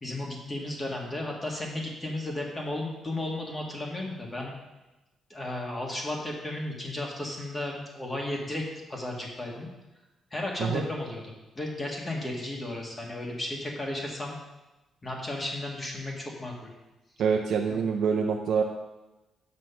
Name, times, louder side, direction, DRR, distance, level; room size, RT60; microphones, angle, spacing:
voice 1, 0.0-4.5 5.3-8.6 8.9-9.7 10.3-14.4 15.0-16.7 17.7-17.8, left 1 dB, 20° left, -1 dB, 1.8 m, -34 dB
voice 2, 17.2-18.6, right 6 dB, 70° right, 1 dB, 0.6 m, -26 dB
6.2 x 6.0 x 5.8 m, 1.1 s
cardioid pair, 125°, 0 cm